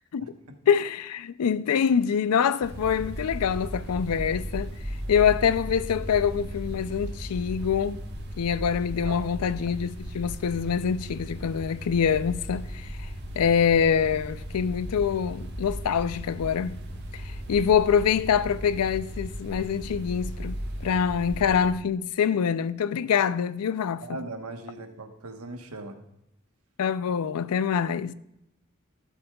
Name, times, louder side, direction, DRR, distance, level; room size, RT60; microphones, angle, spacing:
voice 1, 0.1-0.6 9.0-9.2 24.0-26.0, right 2 dB, 85° right, 1.1 m, -39 dB
voice 2, 0.7-4.7 5.1-8.0 8.4-13.1 13.4-16.8 17.1-24.0 26.8-28.1, left 7 dB, 90° left, 0.4 m, -25 dB
sound 1, 2.6-21.7, equal, 50° right, 1.2 m, -36 dB
15.0 x 8.1 x 2.3 m
head